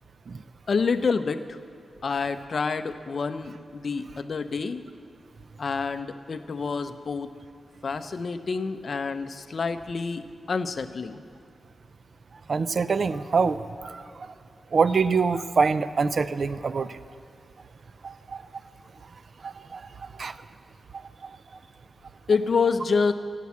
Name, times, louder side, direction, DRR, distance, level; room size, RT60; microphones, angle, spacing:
voice 1, 0.7-1.6 2.0-4.8 5.6-7.3 7.8-11.2 22.3-23.1, left 5 dB, 45° left, 10 dB, 0.6 m, -27 dB
voice 2, 12.5-14.0 14.7-17.0 18.0-18.4 19.4-19.8 20.2-20.3 21.2-21.3, right 5 dB, 45° right, 13 dB, 0.3 m, -25 dB
13.0 x 8.3 x 8.3 m, 2.4 s
wide cardioid pair, 180°, 0 cm